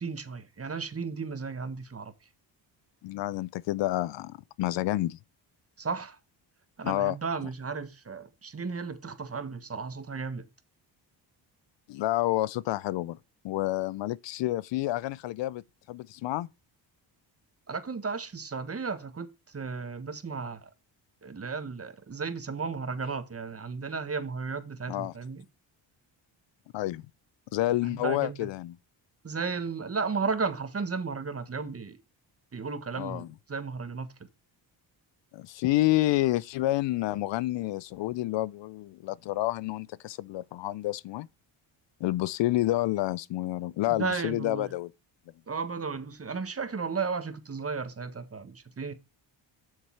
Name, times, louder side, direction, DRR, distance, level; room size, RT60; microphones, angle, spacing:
voice 1, 0.0-2.1 5.8-6.2 6.8-10.5 17.7-20.7 21.2-25.4 27.8-28.5 29.2-32.0 32.5-34.1 43.9-44.7 45.5-48.9, right 5 dB, 30° right, 1.4 m, -34 dB
voice 2, 3.0-5.2 6.8-7.2 11.9-13.2 13.4-16.5 24.9-25.1 26.7-27.0 27.5-28.7 33.0-33.3 35.3-41.3 42.0-44.9, left 16 dB, 65° left, 0.5 m, -29 dB
7.4 x 6.5 x 4.6 m
cardioid pair, 75°, 47 cm